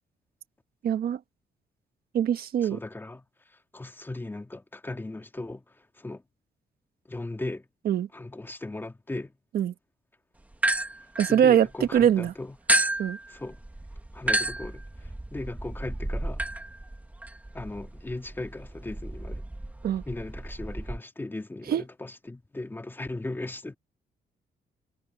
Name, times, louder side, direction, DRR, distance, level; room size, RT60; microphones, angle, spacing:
voice 1, 0.8-1.2 2.1-2.8 7.8-8.1 9.5-9.7 11.2-12.3 13.0-13.2 19.8-20.0 21.7-21.8, right 9 dB, 60° right, 1.4 m, -23 dB
voice 2, 2.7-3.2 3.7-5.6 6.0-6.2 7.1-7.6 8.1-9.3 11.3-12.6 13.3-13.6 14.1-16.4 17.5-19.4 20.1-23.8, left 2 dB, 10° left, 2.9 m, -37 dB
sound 1, 10.5-12.0 12.7-21.0, right 1 dB, 10° right, 1.7 m, -31 dB
cardioid pair, 145°, 17 cm